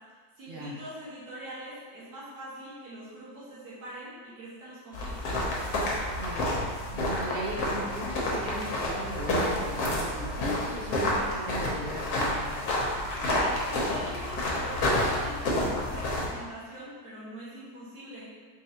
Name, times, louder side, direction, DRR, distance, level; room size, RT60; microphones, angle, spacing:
voice 1, 0.4-5.4 13.2-18.3, right 1 dB, 85° right, -10 dB, 1.7 m, -43 dB
sound 1, 4.9-16.3, left 1 dB, 75° left, 1.3 m, -29 dB
voice 2, 6.1-6.6 6.9-12.6, equal, 50° right, -5 dB, 0.8 m, -38 dB
4.2 x 3.3 x 2.8 m, 1.5 s
omnidirectional pair, 1.6 m